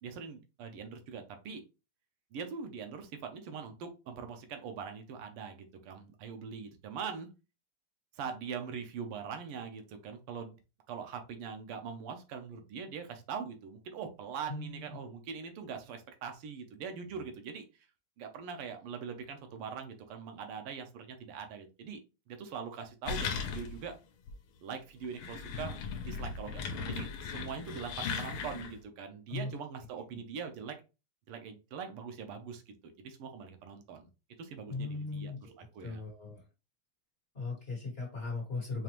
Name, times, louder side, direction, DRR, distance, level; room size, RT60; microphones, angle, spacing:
voice 1, 0.0-1.6 2.3-7.3 8.1-10.6 10.9-17.6 18.2-22.0 22.3-23.9 24.6-25.8 26.1-30.8 31.3-34.1 34.4-36.0, right 6 dB, 90° right, 6 dB, 1.7 m, -42 dB
voice 2, 14.5-14.9 29.3-29.5 34.7-35.5 35.8-36.4 37.3-38.8, left 3 dB, 30° left, -2 dB, 1.6 m, -38 dB
sound 1, 23.1-23.9 24.3-24.4 25.0-28.8, left 5 dB, 80° left, 1.5 m, -38 dB
5.3 x 2.5 x 3.0 m, 0.30 s
omnidirectional pair, 2.4 m